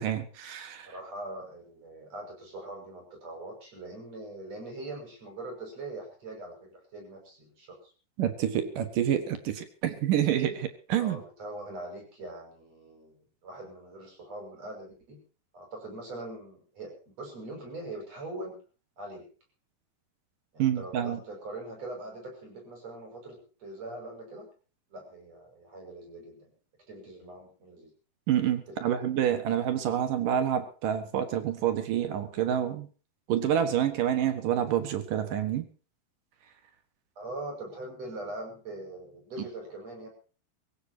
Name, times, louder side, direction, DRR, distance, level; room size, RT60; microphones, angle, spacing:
voice 1, 0.0-0.9 8.2-11.2 20.6-21.2 28.3-32.9 33.3-35.7, right 10 dB, 65° right, 10 dB, 2.9 m, -28 dB
voice 2, 0.9-7.9 11.0-15.2 15.5-18.6 19.0-19.3 20.5-24.5 24.9-26.5 26.9-27.9 28.7-29.1 37.2-40.1, right 2 dB, 40° right, 2 dB, 7.1 m, -42 dB
24.0 x 15.5 x 2.9 m, 0.36 s
omnidirectional pair, 4.5 m